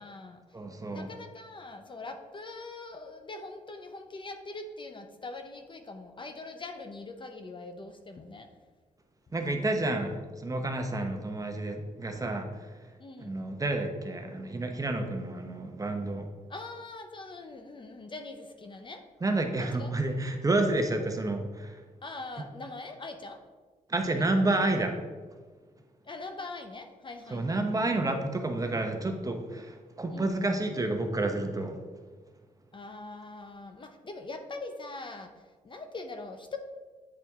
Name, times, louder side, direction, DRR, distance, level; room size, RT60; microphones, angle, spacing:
voice 1, 0.0-0.4 0.8-8.5 13.0-13.4 16.5-19.0 19.6-20.0 22.0-23.4 24.2-24.3 26.0-27.9 30.1-30.4 32.7-36.6, left 3 dB, 35° left, 7 dB, 0.6 m, -42 dB
voice 2, 0.5-1.1 9.3-12.5 13.2-16.3 19.2-21.8 23.9-25.0 27.3-31.8, right 2 dB, 25° right, 4 dB, 0.8 m, -30 dB
8.6 x 4.1 x 3.6 m, 1.4 s
cardioid pair, 80°, 14 cm